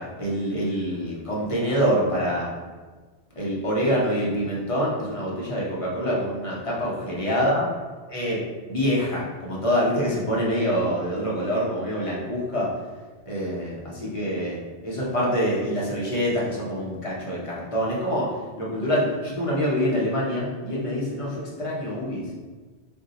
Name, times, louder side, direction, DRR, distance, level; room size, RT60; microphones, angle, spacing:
voice 1, 0.0-2.5 3.4-7.7 8.1-8.4 8.7-12.7 13.3-22.3, equal, 35° left, -5 dB, 0.6 m, -26 dB
2.6 x 2.1 x 3.8 m, 1.4 s
omnidirectional pair, 1.1 m